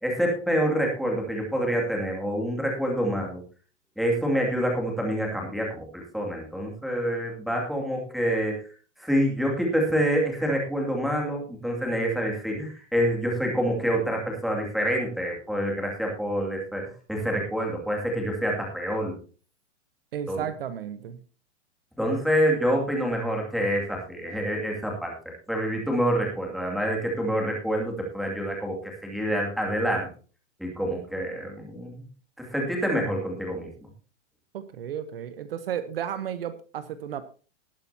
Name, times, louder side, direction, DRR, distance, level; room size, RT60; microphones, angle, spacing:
voice 1, 0.0-3.4 4.0-8.6 9.0-19.1 20.3-20.4 22.0-25.1 25.5-30.1 30.6-32.0 32.4-33.9, equal, ahead, -1 dB, 2.4 m, -27 dB
voice 2, 20.1-21.2 34.5-37.2, right 9 dB, 50° right, 12 dB, 1.1 m, -33 dB
19.0 x 8.9 x 2.8 m, 0.37 s
hypercardioid pair, 170°, 36 cm